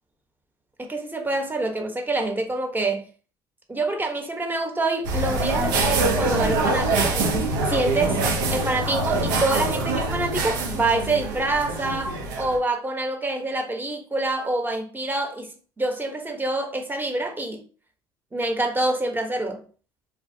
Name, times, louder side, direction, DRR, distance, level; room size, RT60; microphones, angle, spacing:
voice 1, 0.8-3.0 3.7-17.6 18.3-19.6, right 2 dB, 15° right, 0.9 m, -26 dB
sound 1, 5.0-12.6, right 2 dB, 80° right, 0.7 m, -24 dB
3.3 x 2.3 x 2.7 m
hypercardioid pair, 60°, 11 cm